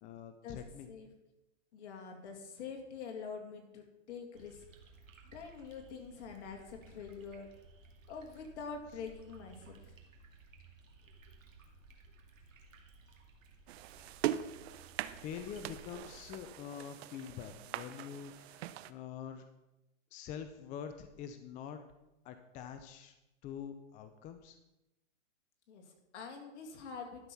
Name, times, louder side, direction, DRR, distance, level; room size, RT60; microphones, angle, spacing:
voice 1, 0.0-0.9 15.2-19.5 20.1-21.8 22.2-23.1 23.4-24.6, left 8 dB, 20° left, 8 dB, 0.5 m, -45 dB
voice 2, 1.7-4.6 5.3-7.5 8.1-9.9 11.1-11.2 25.7-27.3, left 5 dB, 60° left, 3 dB, 2.5 m, -46 dB
sound 1, 4.3-16.5, right 3 dB, 90° right, 2.2 m, -58 dB
sound 2, 13.7-18.9, right 12 dB, 55° right, 0.6 m, -41 dB
12.0 x 6.2 x 5.5 m, 0.93 s
hypercardioid pair, 135°, 38 cm